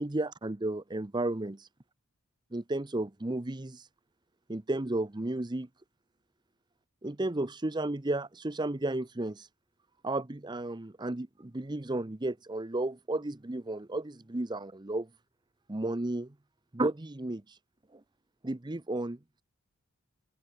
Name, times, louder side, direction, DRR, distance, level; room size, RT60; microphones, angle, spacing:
voice 1, 0.0-1.7 2.5-3.8 4.5-5.7 7.0-9.5 10.0-15.1 15.7-16.3 16.7-17.6 17.9-18.0 18.4-19.2, right 2 dB, 20° right, 0.7 m, -33 dB
open air
head